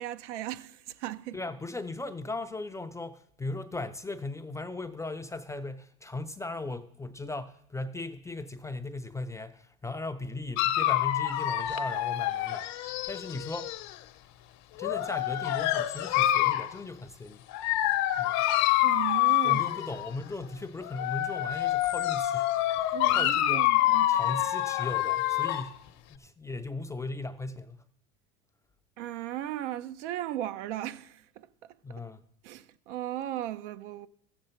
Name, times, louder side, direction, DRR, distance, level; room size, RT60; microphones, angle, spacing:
voice 1, 0.0-1.4 18.8-19.7 22.9-24.3 29.0-32.0 32.4-34.1, right 13 dB, 85° right, 0.7 m, -37 dB
voice 2, 1.3-12.7 13.1-13.7 14.7-17.5 18.2-18.5 19.4-22.5 22.8-23.7 24.1-25.8 26.1-27.8 31.8-32.2, left 2 dB, 10° left, 0.4 m, -38 dB
Dog, 10.6-14.0 14.8-16.7 17.5-20.1 20.8-25.7, left 14 dB, 50° left, 0.7 m, -27 dB
14.0 x 7.8 x 4.3 m
supercardioid pair, 120°, 35 cm